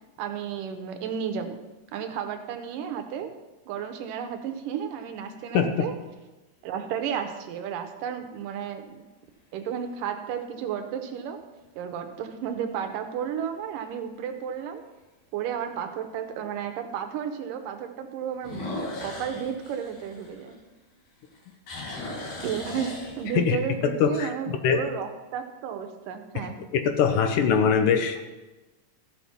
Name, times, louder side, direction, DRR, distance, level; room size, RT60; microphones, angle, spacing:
voice 1, 0.2-1.6 1.9-3.3 3.7-5.9 6.6-9.0 9.5-11.4 11.8-14.8 15.3-18.7 19.0-20.6 22.4-26.6, right 8 dB, 75° right, 7 dB, 2.3 m, -33 dB
sound 1, 4.7-5.4 6.1-6.2 11.4-11.9 12.3-12.4 13.0-13.1 13.4-13.5 15.0-15.1 18.4-20.9 21.3-23.6, left 2 dB, 55° left, 3.0 m, -38 dB
voice 2, 24.0-24.3 24.6-24.8 26.7-28.3, left 6 dB, 75° left, 6 dB, 2.3 m, -22 dB
14.0 x 5.8 x 5.8 m, 1.1 s
omnidirectional pair, 4.0 m